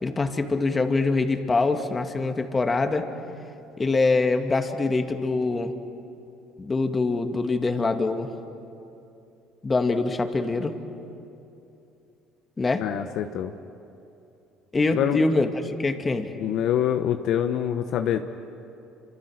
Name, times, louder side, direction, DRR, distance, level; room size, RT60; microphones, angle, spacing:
voice 1, 0.0-3.1 3.8-5.7 6.6-8.3 9.6-10.7 12.6-12.8 14.7-16.3, left 3 dB, 25° left, 6 dB, 2.2 m, -24 dB
voice 2, 12.8-13.5 14.9-15.2 16.4-18.2, left 10 dB, 65° left, 7 dB, 1.0 m, -25 dB
29.0 x 26.0 x 6.5 m, 2.8 s
supercardioid pair, 75°, 0 cm